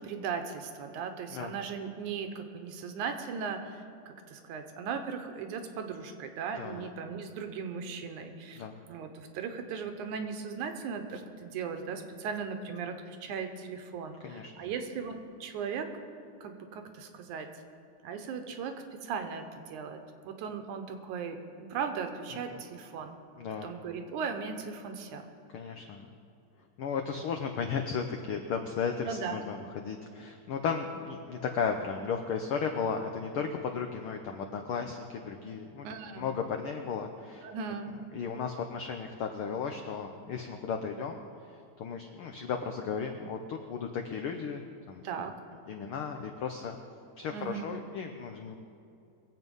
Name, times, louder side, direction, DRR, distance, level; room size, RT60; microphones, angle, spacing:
voice 1, 0.0-15.9 16.4-17.5 18.0-20.0 20.2-23.2 23.6-25.3 29.0-29.4 35.8-36.3 37.4-38.0 45.0-45.3 47.3-47.7, right 6 dB, 80° right, 6 dB, 2.5 m, -38 dB
voice 2, 6.6-6.9 8.6-8.8 14.2-14.7 22.5-22.6 23.4-23.7 25.5-26.1 26.8-35.9 36.1-37.5 38.1-41.2 41.8-45.0 45.7-46.8 47.2-48.5, left 6 dB, 85° left, 4 dB, 1.2 m, -35 dB
22.5 x 8.0 x 5.4 m, 2.6 s
omnidirectional pair, 3.4 m